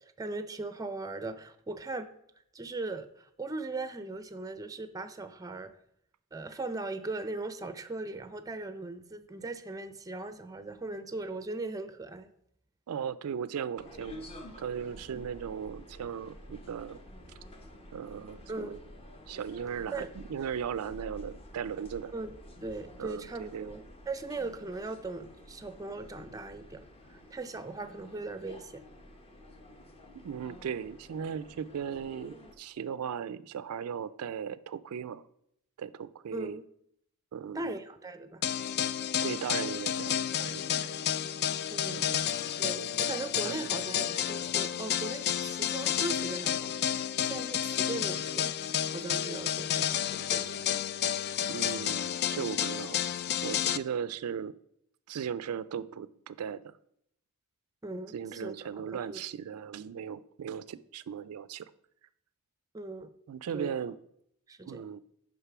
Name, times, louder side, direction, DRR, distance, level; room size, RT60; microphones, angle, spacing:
voice 1, 0.0-2.1 2.5-5.7 6.3-12.3 18.5-18.8 19.9-20.1 22.1-22.3 22.6-28.8 36.3-36.6 37.5-38.4 41.7-42.0 42.6-46.8 47.2-48.5 48.9-50.6 57.8-59.2 62.7-63.1 63.5-63.7 64.5-64.8, right 2 dB, 15° right, 11 dB, 0.5 m, -39 dB
voice 2, 12.9-14.3 14.6-17.0 17.9-18.8 19.3-22.1 23.0-23.7 30.1-35.2 35.8-36.6 37.3-37.8 39.2-41.0 41.9-42.3 42.7-43.0 43.4-43.7 51.5-53.0 53.4-54.5 55.1-56.8 58.1-61.7 63.3-64.0 64.6-65.0, right 7 dB, 80° right, 16 dB, 0.4 m, -37 dB
sound 1, 13.8-32.6, left 1 dB, 25° left, 0.9 m, -50 dB
sound 2, 38.4-53.8, left 10 dB, 45° left, 0.3 m, -31 dB
6.7 x 5.1 x 5.9 m, 0.72 s
head